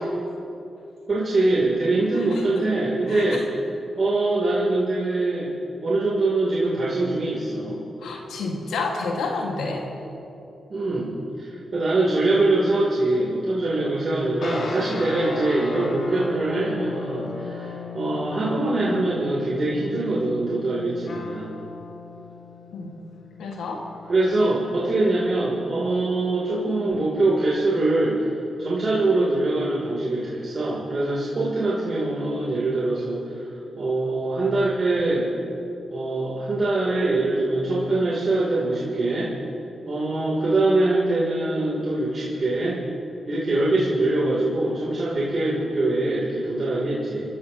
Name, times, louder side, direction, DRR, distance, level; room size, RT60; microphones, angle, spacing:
voice 1, 1.1-3.5 4.0-5.5 5.8-7.8 10.7-11.1 11.4-21.5 24.1-28.3 28.6-33.4 33.8-35.3 35.9-39.3 39.9-42.8 43.3-47.2, right 2 dB, 55° right, -6 dB, 2.9 m, -23 dB
voice 2, 3.1-3.4 8.0-9.9 22.7-22.9 23.4-23.8, left 3 dB, 90° left, 0 dB, 1.7 m, -29 dB
sound 1, 14.4-24.1, left 4 dB, 65° left, 2.4 m, -36 dB
27.0 x 13.5 x 2.9 m, 2.9 s
cardioid pair, 55°, 0 cm